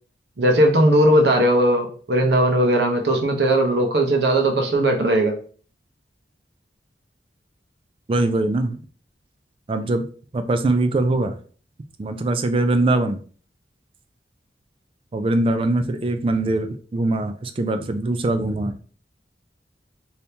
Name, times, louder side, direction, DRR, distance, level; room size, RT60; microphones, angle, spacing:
voice 1, 0.4-5.3, right 1 dB, 70° right, 3 dB, 0.8 m, -18 dB
voice 2, 8.1-8.8 9.7-10.0 10.3-11.4 12.0-13.2 15.1-18.8, right 2 dB, 30° right, 8 dB, 0.3 m, -22 dB
3.4 x 2.7 x 2.8 m, 0.43 s
head